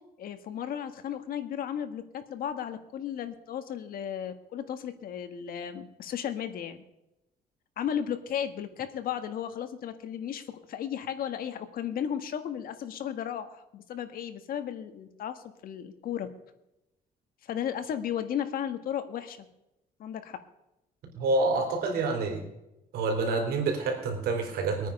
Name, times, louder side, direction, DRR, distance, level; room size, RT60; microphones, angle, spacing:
voice 1, 0.2-6.8 7.8-10.4 10.7-16.3 17.4-19.5 20.0-20.4, left 9 dB, 70° left, 9 dB, 1.6 m, -34 dB
voice 2, 21.1-22.5 22.9-24.9, right 3 dB, 85° right, 3 dB, 3.8 m, -27 dB
22.0 x 9.2 x 5.4 m, 0.91 s
cardioid pair, 120°, 16 cm